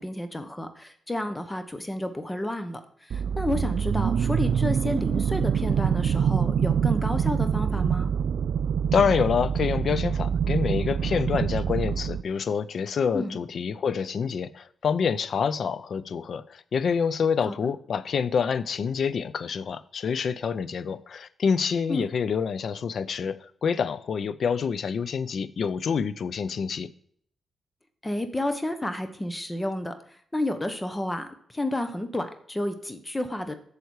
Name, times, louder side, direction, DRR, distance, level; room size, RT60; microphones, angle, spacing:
voice 1, 0.0-8.1 13.1-13.4 17.5-17.6 21.9-22.1 28.0-33.5, left 1 dB, 15° left, 1.0 m, -31 dB
sound 1, 3.1-12.2, right 7 dB, 70° right, 0.3 m, -25 dB
voice 2, 8.9-26.9, left 6 dB, 65° left, 0.5 m, -27 dB
8.1 x 6.9 x 4.7 m
cardioid pair, 90°, 0 cm